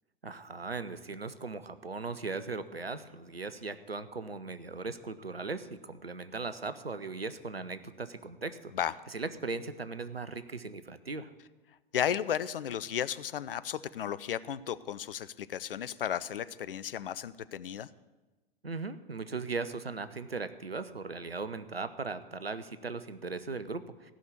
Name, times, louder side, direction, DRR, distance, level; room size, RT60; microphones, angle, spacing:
voice 1, 0.2-8.7 9.1-11.3 18.6-24.1, right 4 dB, 90° right, 12 dB, 0.8 m, -38 dB
voice 2, 11.9-17.9, left 9 dB, 65° left, 16 dB, 0.6 m, -34 dB
15.0 x 6.2 x 8.5 m, 1.2 s
figure-of-eight pair, 95°, 29 cm